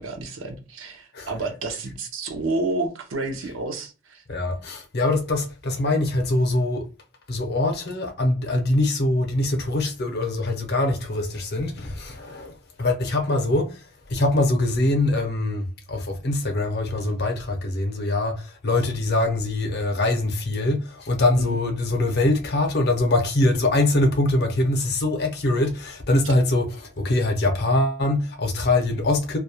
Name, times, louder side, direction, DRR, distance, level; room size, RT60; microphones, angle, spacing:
voice 1, 0.0-4.2 21.4-21.5, right 2 dB, 70° right, 0.6 m, -30 dB
voice 2, 4.3-6.9 7.3-29.4, left 2 dB, 50° left, 0.6 m, -23 dB
2.3 x 2.1 x 2.8 m
head